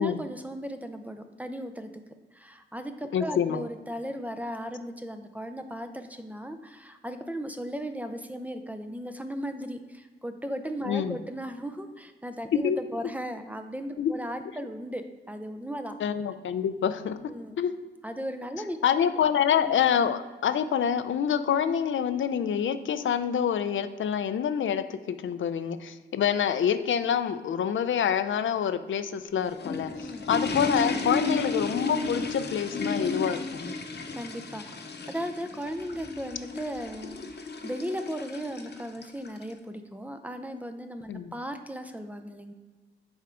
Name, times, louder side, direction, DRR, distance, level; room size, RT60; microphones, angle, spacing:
voice 1, 0.0-1.9 2.3-16.0 17.3-17.6 18.0-18.8 30.0-30.3 34.1-42.5, equal, 10° right, 7 dB, 0.5 m, -36 dB
voice 2, 3.1-3.7 10.9-11.2 12.6-12.8 14.0-14.1 16.0-17.2 17.6-17.7 18.8-33.4 41.1-41.3, left 8 dB, 80° left, 10 dB, 0.4 m, -26 dB
sound 1, 29.2-39.5, left 3 dB, 60° left, 0.8 m, -33 dB
6.9 x 4.4 x 3.7 m, 1.4 s
wide cardioid pair, 90°, 20 cm